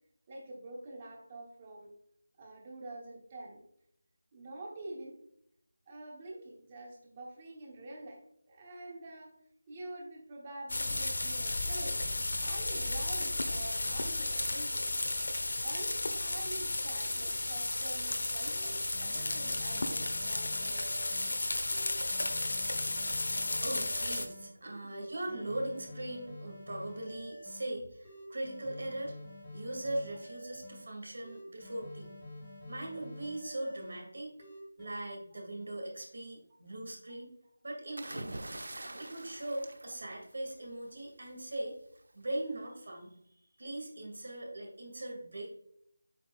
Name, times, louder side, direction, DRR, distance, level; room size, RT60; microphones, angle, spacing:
voice 1, 0.3-1.9 2.4-3.6 4.3-5.2 5.9-8.2 8.5-9.3 9.7-12.1 12.4-14.9 15.6-21.1, right 2 dB, 20° right, -1 dB, 1.1 m, -46 dB
sound 1, 10.7-24.3, left 2 dB, 70° left, 1.0 m, -33 dB
sound 2, 18.5-21.3 21.7-24.5 24.9-27.7 28.1-30.8 31.2-34.0 34.4-34.9, left 1 dB, 10° left, 1.4 m, -48 dB
voice 2, 23.6-29.2 29.5-32.2 32.7-34.4 34.8-37.3 37.6-38.3 39.0-41.8 42.1-43.2 43.6-45.5, right 1 dB, 60° right, 1 dB, 2.2 m, -40 dB
sound 3, 38.0-40.7 42.0-42.3, right 1 dB, 75° right, 0.8 m, -44 dB
7.7 x 5.8 x 2.4 m, 0.72 s
figure-of-eight pair, 175°, 0 cm